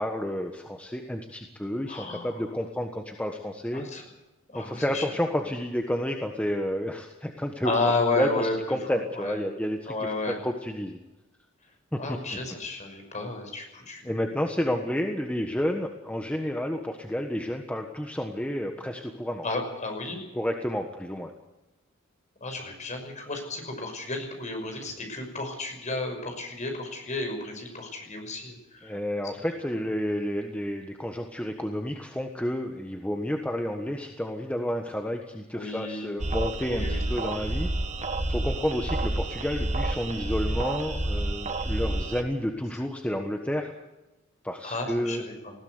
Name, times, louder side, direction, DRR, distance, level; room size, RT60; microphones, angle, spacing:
voice 1, 0.0-3.8 4.5-7.7 8.2-9.9 10.4-11.0 11.9-12.2 14.0-19.5 20.3-21.3 28.8-37.7 38.3-43.7 44.4-45.2, equal, 5° left, 3 dB, 1.4 m, -30 dB
voice 2, 1.9-2.4 3.7-4.0 4.5-5.1 7.6-8.5 8.8-9.4 9.9-10.4 12.0-14.1 19.4-20.2 22.4-29.0 35.5-36.1 36.7-37.0 44.6-45.5, left 3 dB, 40° left, 4 dB, 5.9 m, -32 dB
sound 1, 36.2-42.2, right 1 dB, 35° right, 1.9 m, -29 dB
20.0 x 16.5 x 8.0 m, 1.0 s
head